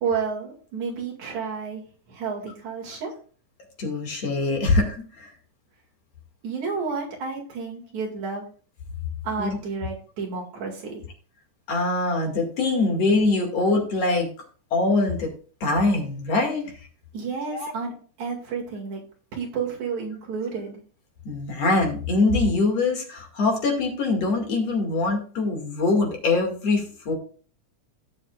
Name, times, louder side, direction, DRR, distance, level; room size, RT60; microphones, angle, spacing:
voice 1, 0.0-3.1 6.4-8.5 9.2-11.0 17.1-17.9 18.2-19.0 19.3-20.8, right 5 dB, 65° right, -1 dB, 3.4 m, -31 dB
voice 2, 3.8-5.3 9.4-9.6 11.7-14.3 14.7-15.3 15.6-16.7 17.5-17.7 21.2-27.1, left 3 dB, 55° left, 1 dB, 3.1 m, -23 dB
17.5 x 6.6 x 2.4 m, 0.41 s
omnidirectional pair, 3.6 m